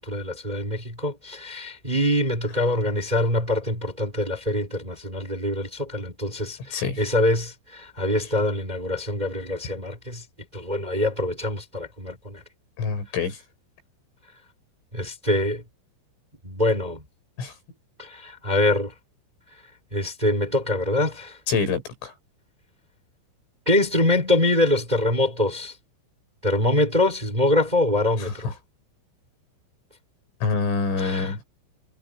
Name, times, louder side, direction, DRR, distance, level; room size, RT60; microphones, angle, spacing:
voice 1, 0.0-10.2 10.5-12.4 14.9-15.6 16.4-17.0 18.0-18.9 19.9-21.4 23.7-25.7 26.4-28.5 31.0-31.3, left 1 dB, 10° right, 3.9 m, -24 dB
voice 2, 6.7-7.0 12.8-13.4 17.4-17.5 21.5-22.1 28.3-28.4 30.4-31.4, left 4 dB, 80° left, 8.4 m, -26 dB
omnidirectional pair, 5.7 m